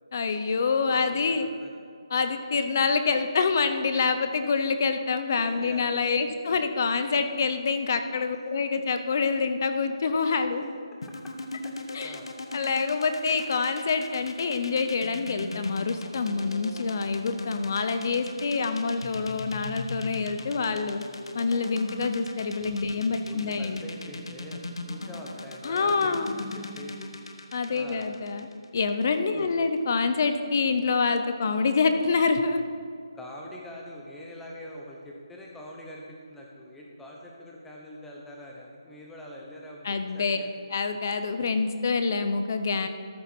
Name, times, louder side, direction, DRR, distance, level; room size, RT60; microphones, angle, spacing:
voice 1, 0.1-1.5 2.1-10.7 11.9-12.2 12.5-21.0 21.3-23.8 25.6-26.3 27.5-28.5 28.7-32.6 39.8-40.4 40.7-42.9, left 4 dB, 35° left, 8 dB, 0.6 m, -26 dB
voice 2, 0.6-1.7 5.4-6.1 11.6-12.3 22.7-27.1 27.7-28.0 29.3-29.7 33.1-40.6, left 1 dB, 5° left, -2 dB, 0.8 m, -44 dB
sound 1, 11.0-29.1, left 3 dB, 65° left, 1.1 m, -39 dB
13.5 x 7.0 x 4.4 m, 2.3 s
hypercardioid pair, 170°, 3 cm